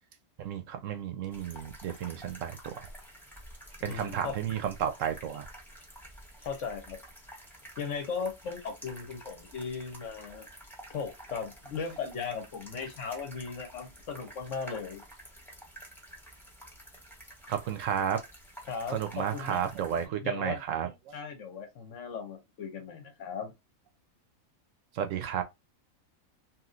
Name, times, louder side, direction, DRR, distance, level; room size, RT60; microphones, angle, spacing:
voice 1, 0.4-2.8 3.8-5.5 17.5-18.2 18.9-21.1 24.9-25.4, right 9 dB, 70° right, 0.9 m, -32 dB
sound 1, 1.3-20.0, right 1 dB, ahead, 0.9 m, -50 dB
voice 2, 3.8-4.3 6.4-7.0 7.8-10.5 10.9-15.0 18.7-19.7 20.2-20.6 21.1-23.5, left 5 dB, 60° left, 1.1 m, -37 dB
3.0 x 2.8 x 2.4 m
omnidirectional pair, 1.5 m